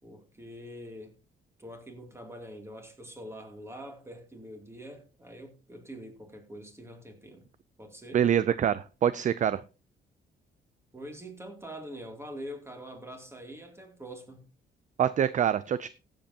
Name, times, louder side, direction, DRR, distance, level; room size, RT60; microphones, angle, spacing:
voice 1, 0.0-1.1 1.6-7.4 7.8-8.2 10.9-14.5, equal, 15° right, 2.6 m, -44 dB
voice 2, 8.1-9.6 15.0-15.9, right 9 dB, 40° right, 0.4 m, -25 dB
16.0 x 7.8 x 2.8 m
cardioid pair, 90°, 20 cm